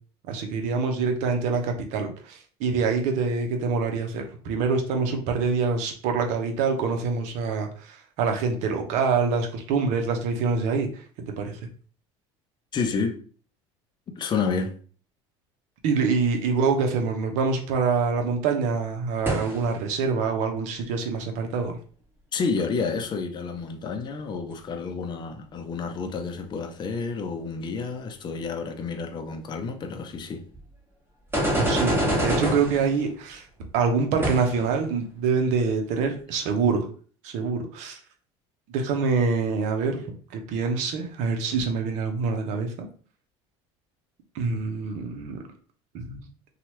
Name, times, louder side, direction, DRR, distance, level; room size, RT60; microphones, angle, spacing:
voice 1, 0.3-10.9 11.4-11.6 15.8-21.8 31.6-33.4 33.7-36.9 37.2-38.0 38.7-40.0 40.3-42.9 44.3-45.4 45.9-46.2, right 5 dB, 70° right, 0.7 m, -25 dB
voice 2, 12.7-13.2 14.2-14.7 22.3-30.4, left 5 dB, 35° left, 0.6 m, -30 dB
sound 1, 19.3-19.7 30.5-30.6 31.3-32.9 34.2-34.7, equal, 15° right, 1.3 m, -25 dB
2.9 x 2.4 x 3.0 m
supercardioid pair, 90°, 13 cm